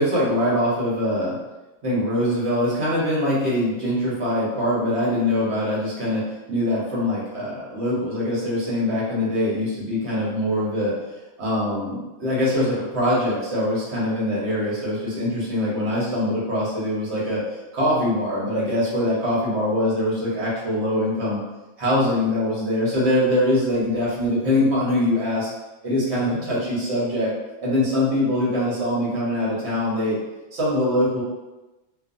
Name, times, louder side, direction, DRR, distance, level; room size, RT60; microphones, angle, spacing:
voice 1, 0.0-1.4 1.8-10.9 11.4-17.4 17.7-21.4 21.8-25.5 25.8-27.3 27.6-30.2 30.5-31.2, left 1 dB, 65° right, -7 dB, 1.2 m, -23 dB
2.6 x 2.3 x 2.5 m, 1.1 s
omnidirectional pair, 1.2 m